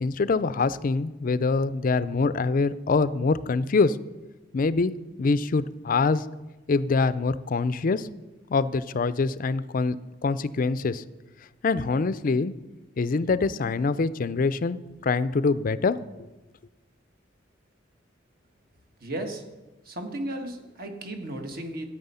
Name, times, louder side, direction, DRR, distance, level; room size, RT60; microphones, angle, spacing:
voice 1, 0.0-4.0 4.5-4.9 5.2-6.2 6.7-8.1 8.5-10.0 10.2-11.0 11.6-12.5 13.0-16.0, left 4 dB, 50° left, 15 dB, 0.4 m, -24 dB
voice 2, 19.0-19.5 19.8-21.9, right 1 dB, 55° right, 5 dB, 1.4 m, -34 dB
13.0 x 8.7 x 5.6 m, 1.1 s
head